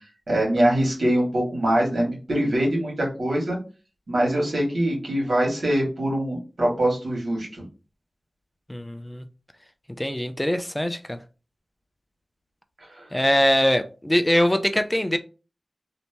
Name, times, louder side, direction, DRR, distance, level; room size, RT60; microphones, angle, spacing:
voice 1, 0.3-3.6 4.1-7.6 12.9-13.1, right 1 dB, 75° right, 2.0 m, -23 dB
voice 2, 8.7-9.2 10.0-11.2 13.1-15.2, equal, 15° left, 0.4 m, -22 dB
3.2 x 2.9 x 2.9 m
wide cardioid pair, 55°, 0 cm